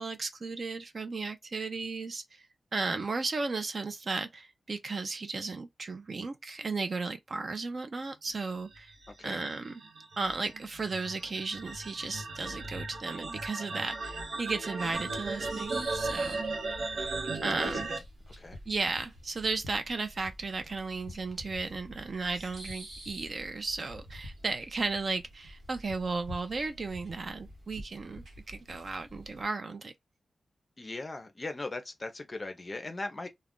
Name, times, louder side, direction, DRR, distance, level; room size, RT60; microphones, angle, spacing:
voice 1, 0.0-2.5 2.7-8.9 9.2-9.7 10.2-16.5 17.4-17.9 18.7-29.9, right 3 dB, 40° right, 0.4 m, -35 dB
sound 1, 8.7-18.0, right 3 dB, 85° right, 0.7 m, -36 dB
voice 2, 9.1-9.4 17.6-18.0 18.4-18.6 30.8-33.3, left 2 dB, 25° left, 0.5 m, -39 dB
sound 2, 14.9-29.4, equal, 65° right, 1.1 m, -47 dB
2.3 x 2.1 x 3.6 m
wide cardioid pair, 170°, 0 cm